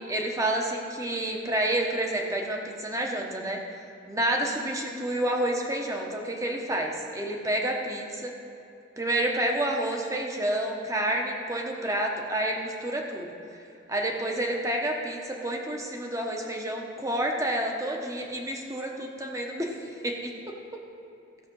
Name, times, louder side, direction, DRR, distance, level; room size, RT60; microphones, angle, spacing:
voice 1, 0.0-3.6 4.1-8.3 9.0-13.3 13.9-19.8 20.0-20.6, right 1 dB, 15° right, 1 dB, 1.0 m, -29 dB
14.5 x 6.9 x 5.4 m, 2.5 s
head